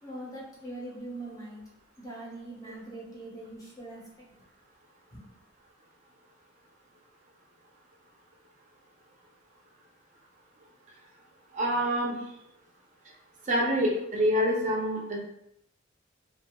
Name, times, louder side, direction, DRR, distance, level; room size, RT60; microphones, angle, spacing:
voice 1, 0.0-1.6 2.0-4.0 5.1-5.2, right 1 dB, 15° left, -5 dB, 0.6 m, -42 dB
voice 2, 11.5-12.1 13.5-15.2, equal, 35° right, -2 dB, 0.5 m, -26 dB
2.5 x 2.2 x 2.9 m, 0.79 s
head